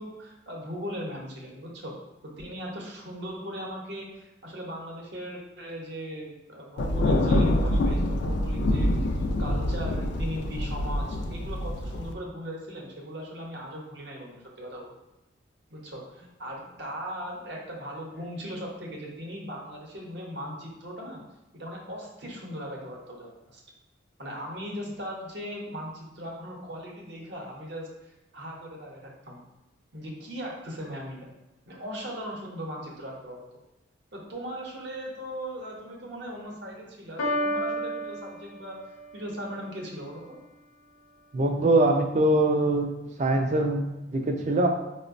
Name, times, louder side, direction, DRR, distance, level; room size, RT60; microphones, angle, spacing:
voice 1, 0.0-1.9 2.2-9.1 9.4-14.9 15.7-21.2 21.5-23.6 24.2-29.4 29.9-31.3 31.7-33.4 34.1-38.8 39.1-40.4, equal, 60° right, -1 dB, 0.7 m, -38 dB
Thunder, 6.8-12.1, left 1 dB, 60° left, 0.3 m, -26 dB
Piano, 37.2-39.2, equal, 90° left, 0.7 m, -31 dB
voice 2, 41.3-42.9 43.2-44.7, right 2 dB, 35° right, 3 dB, 0.3 m, -23 dB
4.6 x 2.0 x 2.5 m, 0.98 s
head